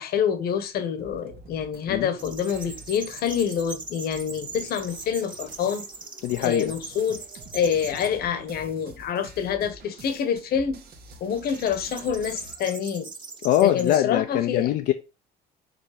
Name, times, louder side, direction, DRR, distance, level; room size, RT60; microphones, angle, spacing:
voice 1, 0.0-5.9 6.4-7.2 7.5-10.8 11.2-13.1 13.6-14.7, left 7 dB, 65° left, 1.2 m, -27 dB
sound 1, 1.0-12.5, right 3 dB, 65° right, 1.5 m, -48 dB
sound 2, 2.2-8.1 8.7-9.2 11.4-14.0, right 4 dB, 30° right, 1.4 m, -41 dB
voice 2, 6.2-6.7 13.4-14.9, left 12 dB, 85° left, 0.7 m, -22 dB
5.2 x 4.5 x 5.0 m
cardioid pair, 110°, 17 cm